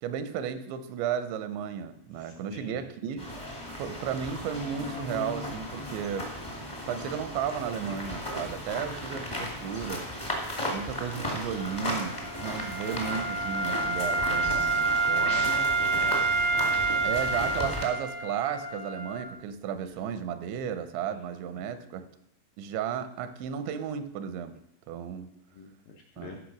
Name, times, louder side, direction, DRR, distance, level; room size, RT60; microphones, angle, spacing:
voice 1, 0.0-3.3 3.8-6.3 6.9-10.1 10.7-15.6 17.0-22.1 22.6-24.6 24.9-25.3 26.2-26.4, right 8 dB, 80° right, 10 dB, 3.1 m, -34 dB
voice 2, 2.2-2.8 9.1-9.2 15.2-16.2 25.5-26.4, left 4 dB, 80° left, 1 dB, 2.1 m, -44 dB
sound 1, 3.2-17.8, equal, 25° left, 0.6 m, -36 dB
Wind instrument woodwind instrument, 11.5-19.3, right 3 dB, 45° right, 0.8 m, -28 dB
15.0 x 5.5 x 6.1 m, 0.75 s
omnidirectional pair, 5.2 m